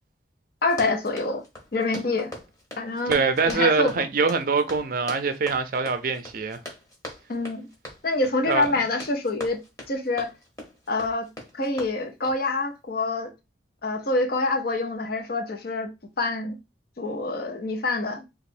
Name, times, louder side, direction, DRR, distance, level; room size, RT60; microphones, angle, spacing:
voice 1, 0.6-1.4 1.7-2.3 2.8-3.2 3.5-4.1 7.3-7.7 8.0-9.6 9.9-10.3 10.9-11.3 11.5-13.3 13.8-16.6 17.0-18.2, left 2 dB, 55° left, 0.6 m, -26 dB
Run, 0.6-12.4, left 1 dB, 15° left, 1.0 m, -42 dB
voice 2, 3.1-6.6 8.5-8.7, right 4 dB, 50° right, 0.5 m, -24 dB
3.1 x 2.4 x 4.2 m
head